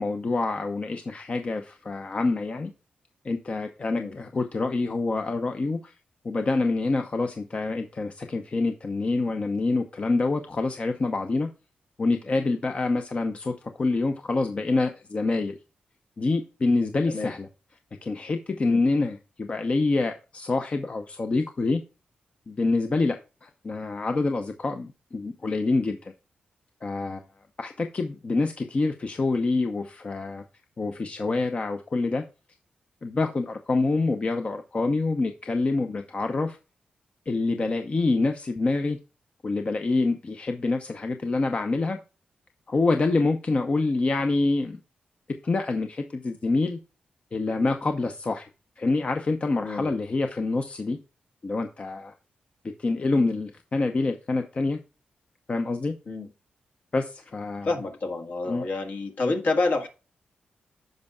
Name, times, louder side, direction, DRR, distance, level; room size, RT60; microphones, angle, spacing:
voice 1, 0.0-2.7 3.2-5.9 6.2-11.5 12.0-15.6 16.2-17.5 18.0-21.8 22.5-23.2 23.4-26.1 26.8-27.2 27.6-30.4 30.8-32.2 33.0-36.6 37.3-39.0 39.4-42.0 42.7-44.8 45.4-46.8 47.3-48.5 48.8-51.0 51.4-52.1 52.8-54.8 55.5-55.9 56.9-57.7 58.5-58.6, left 3 dB, 40° left, 0.7 m, -26 dB
voice 2, 49.6-50.0 56.1-56.3 57.6-59.9, left 3 dB, 65° left, 1.7 m, -28 dB
14.0 x 5.4 x 2.3 m
cardioid pair, 90°, 3 cm